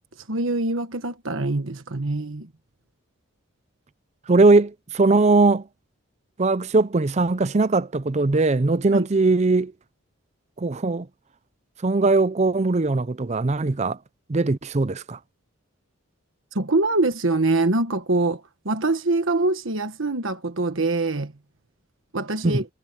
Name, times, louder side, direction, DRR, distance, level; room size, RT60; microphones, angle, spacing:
voice 1, 0.3-2.5 8.9-9.1 16.5-21.3 22.1-22.7, right 2 dB, 65° right, 1.4 m, -24 dB
voice 2, 4.3-5.7 6.4-9.7 10.6-11.1 11.8-14.0 14.3-15.2 22.4-22.6, right 3 dB, 30° right, 0.5 m, -20 dB
head